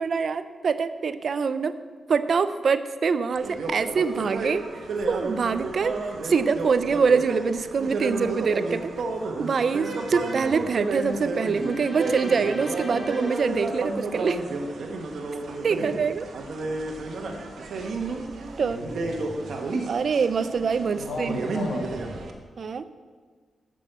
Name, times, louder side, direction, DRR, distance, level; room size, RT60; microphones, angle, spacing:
voice 1, 0.0-1.7 2.1-4.7 5.1-8.9 9.4-14.4 15.6-16.3 18.6-18.8 19.9-21.7 22.6-22.9, right 5 dB, 50° right, 12 dB, 0.4 m, -25 dB
sound 1, 3.3-22.3, right 2 dB, 65° right, 1.2 m, -31 dB
sound 2, 11.1-14.5, equal, 5° right, 2.8 m, -37 dB
voice 2, 18.6-19.4 21.0-22.1, left 2 dB, 60° left, 1 dB, 1.9 m, -35 dB
10.5 x 6.1 x 7.9 m, 1.5 s
wide cardioid pair, 170°, 0 cm